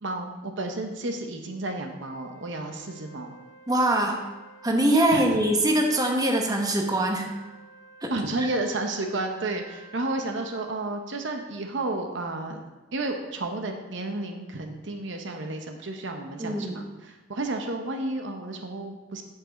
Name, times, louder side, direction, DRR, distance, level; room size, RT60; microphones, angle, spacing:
voice 1, 0.0-3.4 5.1-5.2 8.1-12.6 12.9-19.2, right 2 dB, 65° right, 4 dB, 0.8 m, -32 dB
Wind instrument woodwind instrument, 1.6-10.7, right 2 dB, 40° left, 1.8 m, -51 dB
voice 2, 3.7-4.2 4.6-7.3 8.0-8.1 16.4-16.8, right 1 dB, 20° right, 2 dB, 0.9 m, -23 dB
8.0 x 7.4 x 3.7 m, 1.1 s
head